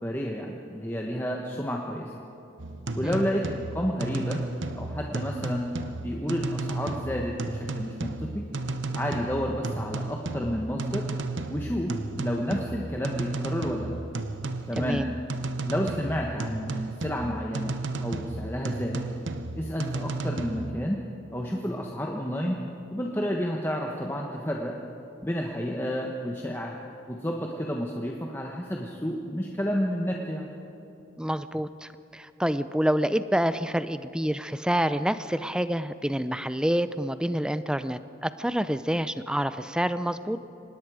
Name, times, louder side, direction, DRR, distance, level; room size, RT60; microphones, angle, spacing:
voice 1, 0.0-2.1 2.9-3.4 3.7-4.4 4.7-5.7 6.0-8.5 8.9-11.1 11.5-14.0 14.7-15.0 15.6-19.1 19.5-21.0 21.3-22.6 22.9-24.8 25.2-26.7 27.1-30.5, equal, 10° left, 0 dB, 1.2 m, -30 dB
sound 1, 2.6-20.7, right 2 dB, 85° right, 1.0 m, -33 dB
voice 2, 14.8-15.1 31.2-40.4, equal, 5° right, 12 dB, 0.5 m, -27 dB
26.0 x 20.5 x 5.0 m, 3.0 s
head